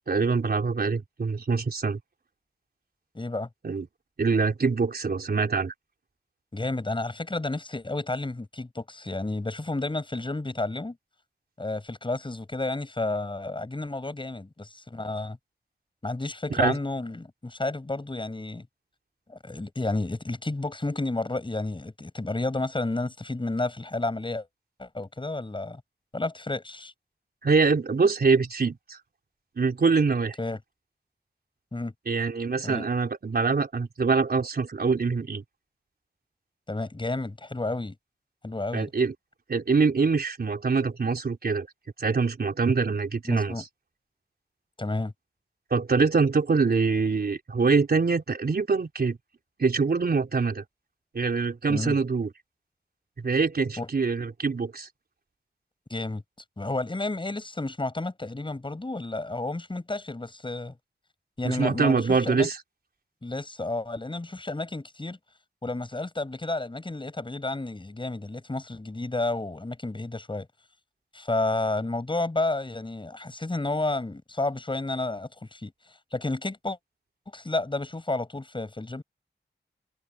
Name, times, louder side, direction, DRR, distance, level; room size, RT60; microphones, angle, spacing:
voice 1, 0.1-2.0 3.6-3.9 4.2-5.7 16.5-16.8 27.4-29.0 29.6-30.4 32.1-35.4 38.7-39.1 39.5-41.7 42.0-43.7 45.7-49.2 49.6-50.6 51.1-52.3 53.2-54.9 61.4-62.6, right 4 dB, 60° right, 4.0 m, -24 dB
voice 2, 3.1-3.5 6.5-11.0 11.6-15.4 16.0-18.7 19.3-24.5 24.8-25.8 26.1-26.9 30.4-30.6 31.7-31.9 32.6-32.9 36.7-38.0 38.4-38.9 43.2-43.6 44.8-45.1 51.7-52.0 53.8-53.9 55.9-56.2 56.6-60.8 61.4-62.5 63.2-65.2 65.6-70.5 71.1-75.7 76.1-76.8 77.3-79.0, left 2 dB, 25° left, 6.7 m, -31 dB
wide cardioid pair, 120°, 18 cm